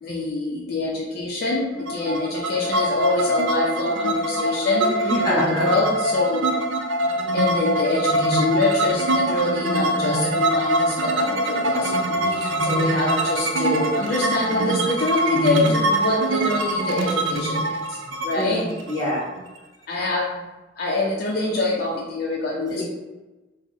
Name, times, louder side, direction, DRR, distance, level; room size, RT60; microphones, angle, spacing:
voice 1, 0.0-6.6 7.3-18.0 18.2-18.7 19.9-20.5 20.8-22.8, left 2 dB, 55° left, -3 dB, 0.5 m, -25 dB
sound 1, 1.9-19.6, right 1 dB, 75° right, 0.5 m, -23 dB
voice 2, 5.0-5.8 12.9-13.2 18.3-19.2 22.7-22.8, equal, 20° left, -8 dB, 1.3 m, -26 dB
3.8 x 2.0 x 3.7 m, 1.1 s
head